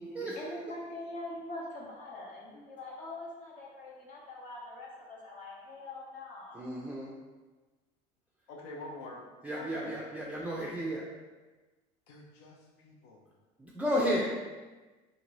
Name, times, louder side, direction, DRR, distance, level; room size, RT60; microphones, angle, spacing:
voice 1, 0.0-6.6, left 2 dB, 45° left, -3 dB, 0.8 m, -43 dB
voice 2, 6.5-7.1 9.4-11.1 13.6-14.3, equal, 10° right, -5 dB, 0.4 m, -32 dB
voice 3, 8.5-9.2 9.5-9.9 12.1-13.2, left 2 dB, 85° left, -1 dB, 0.6 m, -46 dB
2.6 x 2.5 x 3.0 m, 1.2 s
supercardioid pair, 110°, 18 cm